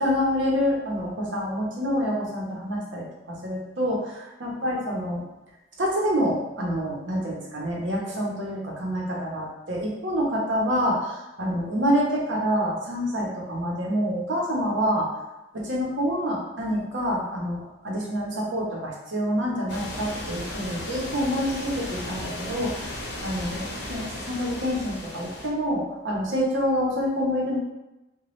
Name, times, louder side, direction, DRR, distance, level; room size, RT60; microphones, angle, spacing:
voice 1, 0.0-5.2 5.8-15.1 15.5-27.6, equal, 85° right, -3 dB, 0.8 m, -27 dB
sound 1, 19.7-25.5, left 1 dB, 60° left, 0.7 m, -35 dB
2.9 x 2.2 x 3.1 m, 0.99 s
head